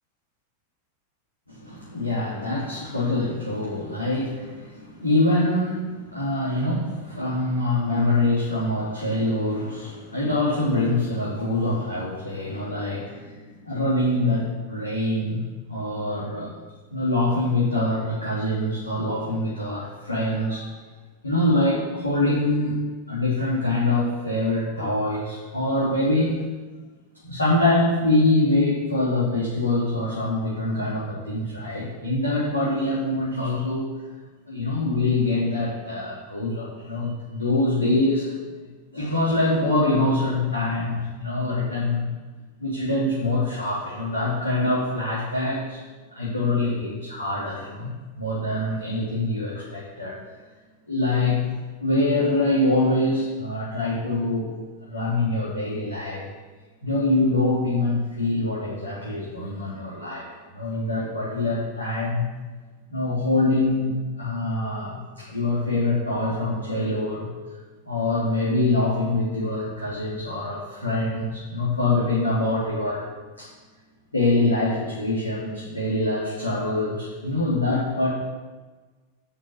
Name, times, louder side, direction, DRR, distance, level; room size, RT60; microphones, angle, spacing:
voice 1, 1.5-15.4 15.7-16.5 16.9-20.7 21.2-22.8 23.1-26.4 27.2-33.9 34.5-38.6 38.9-42.1 42.6-45.8 46.1-50.2 50.9-51.4 51.8-54.5 54.9-56.3 56.8-60.3 60.5-62.3 62.9-67.3 67.8-73.1 73.4-73.5 74.1-78.1, left 2 dB, 80° left, -8 dB, 3.6 m, -24 dB
11.0 x 6.4 x 8.6 m, 1.3 s
figure-of-eight pair, 90°, 0 cm